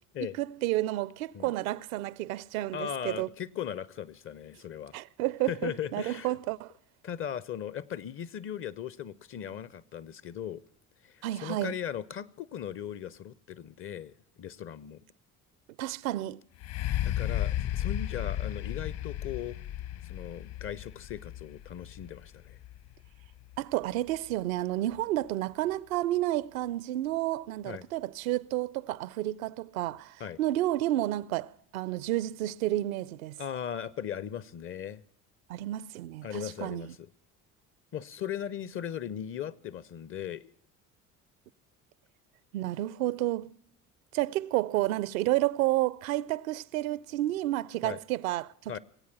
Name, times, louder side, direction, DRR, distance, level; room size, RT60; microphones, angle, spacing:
voice 1, 0.4-3.3 4.9-6.7 11.2-11.8 15.8-16.4 23.6-33.4 35.5-36.9 42.5-43.5 44.1-48.8, right 15 dB, 65° right, 0.6 m, -31 dB
voice 2, 2.7-4.9 5.5-6.3 7.0-10.6 11.0-14.1 14.4-15.0 16.7-19.6 20.0-22.6 27.7-27.9 30.2-30.4 33.4-35.0 36.2-37.1 37.9-40.5 47.8-48.0 48.7-48.8, left 9 dB, 30° left, 0.5 m, -38 dB
sound 1, 16.6-24.3 25.0-25.1, left 12 dB, 60° left, 1.2 m, -34 dB
19.5 x 8.5 x 7.2 m
figure-of-eight pair, 60°, 45 cm